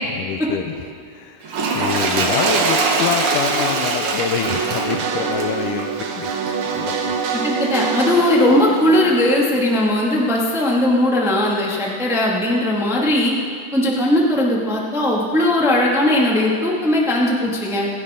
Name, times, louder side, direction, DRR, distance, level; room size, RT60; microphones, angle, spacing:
voice 1, 0.1-6.3 6.6-7.1, left 8 dB, 75° left, 7 dB, 2.2 m, -26 dB
Toilet flush, 1.4-6.9 7.6-7.7, right 3 dB, 55° right, 1.7 m, -22 dB
sound 1, 4.4-10.2, right 6 dB, 70° right, 1.2 m, -26 dB
voice 2, 7.3-13.3 13.7-17.9, left 1 dB, ahead, -3 dB, 1.1 m, -18 dB
26.5 x 10.5 x 3.8 m, 2.4 s
omnidirectional pair, 3.8 m